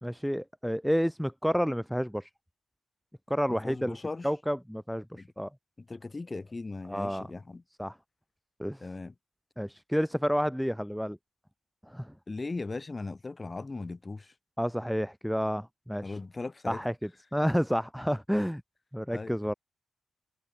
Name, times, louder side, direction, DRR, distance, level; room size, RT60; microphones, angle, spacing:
voice 1, 0.0-2.3 3.3-4.0 4.2-5.5 6.9-7.3 7.8-7.9 8.6-8.8 9.6-11.2 11.9-12.1 14.6-16.1 16.7-18.6 18.9-19.5, equal, ahead, 0.6 m, -30 dB
voice 2, 3.5-4.3 5.1-5.3 5.8-7.6 8.8-9.1 12.3-14.3 16.0-16.8 19.1-19.3, left 3 dB, 20° left, 2.2 m, -38 dB
wide cardioid pair, 165°, 0 cm